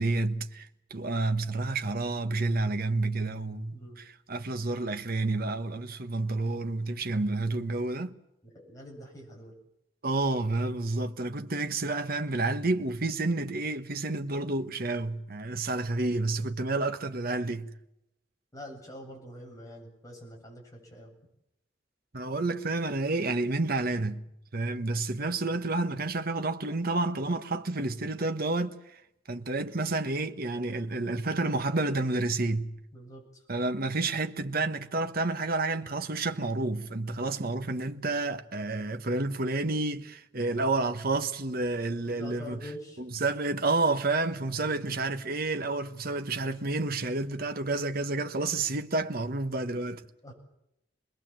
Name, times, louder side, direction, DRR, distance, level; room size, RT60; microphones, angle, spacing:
voice 1, 0.0-8.1 10.0-17.7 22.1-24.2 24.5-29.0 29.3-32.8 33.5-42.6 43.0-50.0, right 2 dB, 55° right, 1.3 m, -30 dB
voice 2, 8.5-9.5 18.5-21.1 32.9-33.4 42.0-43.0 50.2-50.3, left 1 dB, 20° left, 8.0 m, -45 dB
27.0 x 21.0 x 7.6 m
head